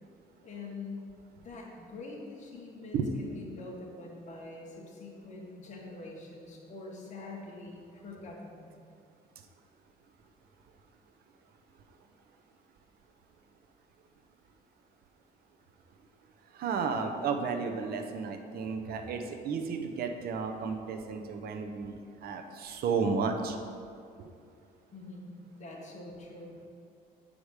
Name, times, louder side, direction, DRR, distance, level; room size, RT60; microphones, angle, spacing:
voice 1, 0.4-1.1 1.4-8.7 24.9-26.7, left 3 dB, 45° left, -2 dB, 2.2 m, -45 dB
voice 2, 16.5-23.6 24.2-24.3, right 5 dB, 65° right, 5 dB, 0.9 m, -33 dB
8.8 x 5.0 x 6.5 m, 2.4 s
cardioid pair, 110°, 17 cm